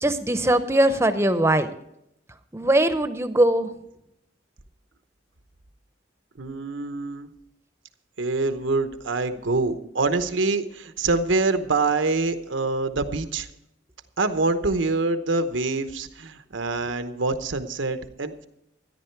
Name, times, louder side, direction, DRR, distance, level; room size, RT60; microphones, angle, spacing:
voice 1, 0.0-1.7 2.5-3.7, right 1 dB, 15° right, 11 dB, 0.7 m, -21 dB
voice 2, 6.4-7.3 8.2-13.5 14.2-18.5, right 3 dB, 85° right, 9 dB, 0.9 m, -25 dB
13.5 x 10.5 x 4.6 m, 0.80 s
head